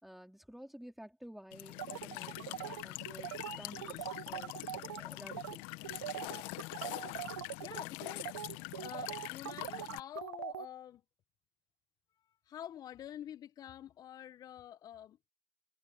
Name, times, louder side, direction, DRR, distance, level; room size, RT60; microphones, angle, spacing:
voice 1, 0.0-5.6, equal, ahead, 4.4 m, -52 dB
Walk footsteps / Chirp tweet / Stream, 1.5-10.0, left 25 dB, 60° left, 1.7 m, -44 dB
sound 1, 1.8-5.0 5.3-5.6 5.8-10.7, right 12 dB, 85° right, 0.5 m, -42 dB
voice 2, 7.6-8.3 8.7-11.0 12.2-15.2, left 11 dB, 35° left, 1.2 m, -48 dB
hypercardioid pair, 90°, 10 cm